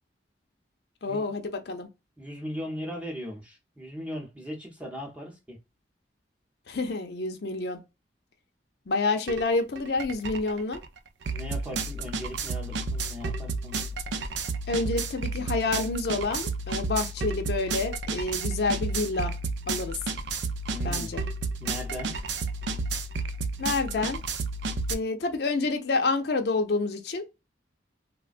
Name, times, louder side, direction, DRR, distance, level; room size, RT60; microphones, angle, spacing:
voice 1, 1.0-1.9 6.7-7.8 8.9-10.8 14.7-19.3 19.7-20.0 20.8-21.2 23.6-24.2 24.9-27.2, left 3 dB, 60° left, 0.5 m, -28 dB
voice 2, 2.2-5.6 11.3-13.8 20.7-21.1 21.6-22.1, equal, 5° right, 0.7 m, -38 dB
sound 1, 9.3-9.4 9.8-24.9, right 3 dB, 75° right, 0.4 m, -31 dB
3.2 x 2.1 x 2.4 m
head